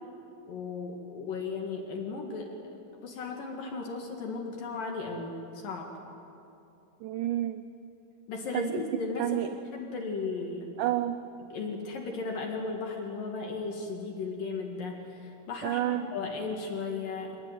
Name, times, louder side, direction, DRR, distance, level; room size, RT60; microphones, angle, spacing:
voice 1, 0.5-6.0 8.3-9.4 9.7-10.7 11.5-17.4, left 4 dB, 65° left, 1 dB, 3.6 m, -36 dB
voice 2, 7.0-7.6 8.5-8.8 9.2-9.5 10.8-11.2 15.6-16.0, right 14 dB, 80° right, 10 dB, 1.9 m, -29 dB
26.0 x 19.5 x 9.2 m, 2.8 s
omnidirectional pair, 4.4 m